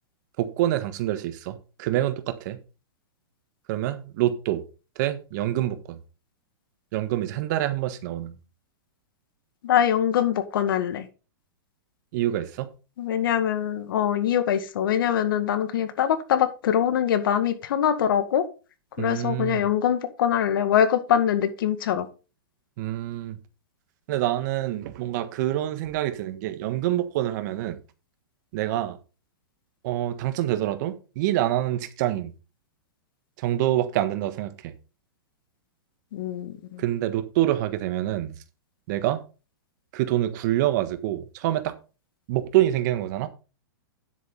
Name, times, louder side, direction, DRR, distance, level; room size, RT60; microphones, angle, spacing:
voice 1, 0.4-2.6 3.7-4.6 4.9-6.0 6.9-8.3 12.1-12.7 19.0-19.7 22.8-23.4 24.1-27.8 28.5-29.0 29.8-32.3 33.4-34.7 36.8-38.3 38.9-39.2 39.9-41.7 42.3-43.3, right 13 dB, 50° right, 1.4 m, -26 dB
voice 2, 9.6-11.1 13.0-18.4 19.0-22.1 36.1-36.8, left 9 dB, 65° left, 1.9 m, -23 dB
10.0 x 7.8 x 4.0 m
hypercardioid pair, 135°, 12 cm